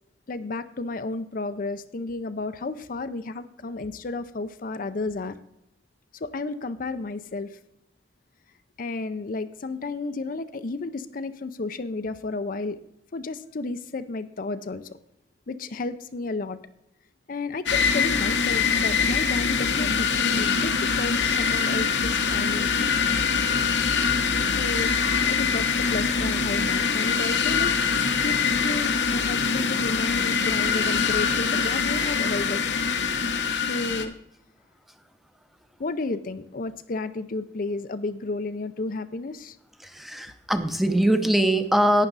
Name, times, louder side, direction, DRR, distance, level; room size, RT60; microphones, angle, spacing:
voice 1, 0.3-5.4 6.1-7.6 8.8-12.8 13.1-15.0 15.5-16.6 17.3-22.8 24.4-32.7 33.5-34.1 35.8-39.6, left 3 dB, 50° left, 11 dB, 0.5 m, -32 dB
sound 1, 17.7-34.1, left 5 dB, 75° left, 1.0 m, -24 dB
voice 2, 39.8-42.1, right 1 dB, ahead, 8 dB, 0.7 m, -22 dB
11.5 x 9.0 x 4.0 m, 0.80 s
head